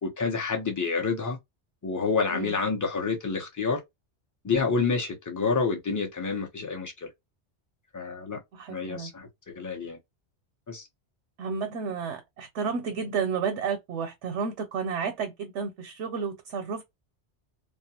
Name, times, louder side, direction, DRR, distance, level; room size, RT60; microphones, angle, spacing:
voice 1, 0.0-1.4 1.8-3.8 4.4-7.1 7.9-8.4 8.7-10.0 10.7-10.8, left 4 dB, 20° left, 0.5 m, -28 dB
voice 2, 8.5-9.1 11.4-16.8, right 6 dB, 85° right, 0.9 m, -31 dB
2.3 x 2.2 x 2.8 m
omnidirectional pair, 1.2 m